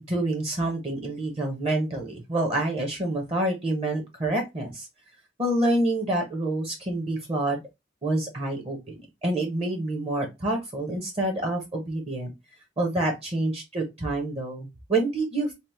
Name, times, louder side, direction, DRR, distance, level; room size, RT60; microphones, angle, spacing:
voice 1, 0.1-4.9 5.4-7.6 8.0-8.8 9.2-12.3 12.8-15.5, right 1 dB, 30° right, 3 dB, 0.6 m, -27 dB
2.8 x 2.0 x 3.0 m, 0.22 s
head